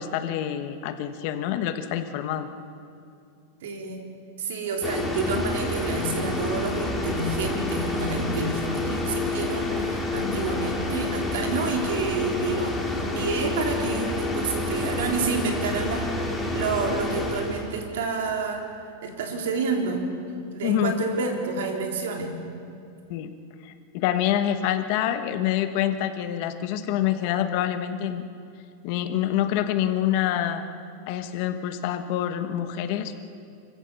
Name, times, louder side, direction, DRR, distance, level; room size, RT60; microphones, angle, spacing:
voice 1, 0.0-2.5 20.6-20.9 23.1-23.3 23.6-28.2 28.8-30.6 31.1-33.2, left 11 dB, 45° left, 8 dB, 1.3 m, -26 dB
voice 2, 3.6-4.1 4.4-18.6 19.0-20.1 20.5-22.4, right 4 dB, 75° right, 2 dB, 3.7 m, -29 dB
sound 1, 4.8-17.8, left 2 dB, 5° left, 2.2 m, -28 dB
25.5 x 16.0 x 7.1 m, 2.4 s
supercardioid pair, 165°, 0 cm